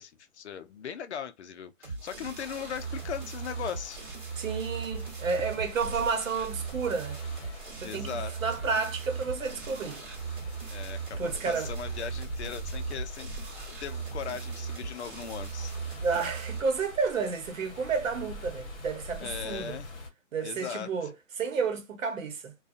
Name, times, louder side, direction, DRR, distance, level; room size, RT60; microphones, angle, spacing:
voice 1, 0.0-4.0 4.3-4.5 7.8-8.3 10.7-13.3 13.8-15.7 19.2-19.9 20.4-21.1, left 8 dB, 55° left, 0.5 m, -39 dB
sound 1, 1.8-16.6, right 5 dB, 35° right, 1.1 m, -38 dB
sound 2, 2.4-20.1, left 1 dB, 35° left, 1.0 m, -45 dB
voice 2, 4.4-7.2 7.8-10.0 11.2-11.7 16.0-19.8 20.3-22.5, right 5 dB, 75° right, 0.9 m, -31 dB
2.5 x 2.3 x 2.4 m
hypercardioid pair, 155°, 40 cm